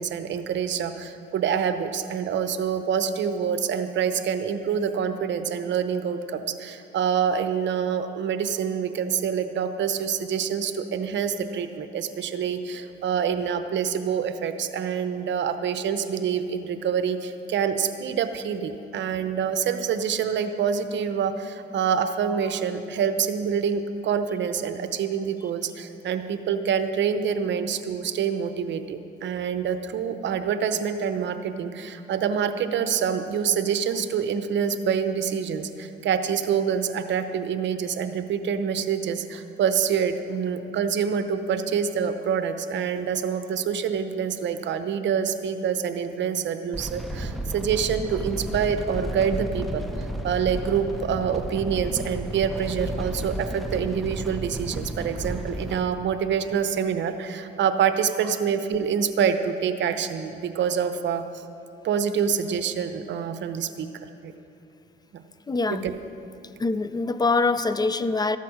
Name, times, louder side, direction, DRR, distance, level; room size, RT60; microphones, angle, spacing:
voice 1, 0.0-61.4 61.8-63.9 64.2-64.3 65.1-65.2 65.7-65.9, right 7 dB, 65° right, 9 dB, 0.8 m, -26 dB
sound 1, 46.7-55.8, right 1 dB, ahead, 1.0 m, -32 dB
voice 2, 65.5-65.9 66.6-68.4, left 3 dB, 20° left, 14 dB, 0.5 m, -24 dB
13.5 x 8.4 x 6.4 m, 2.7 s
cardioid pair, 90°, 20 cm